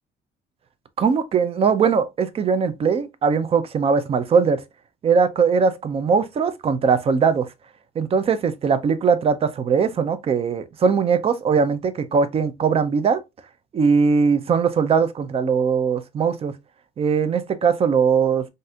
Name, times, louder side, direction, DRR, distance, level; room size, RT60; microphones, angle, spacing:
voice 1, 1.0-4.6 5.0-7.5 8.0-13.2 13.7-16.5 17.0-18.5, right 5 dB, 35° right, 0.4 m, -20 dB
4.0 x 2.5 x 2.3 m
cardioid pair, 110°, 17 cm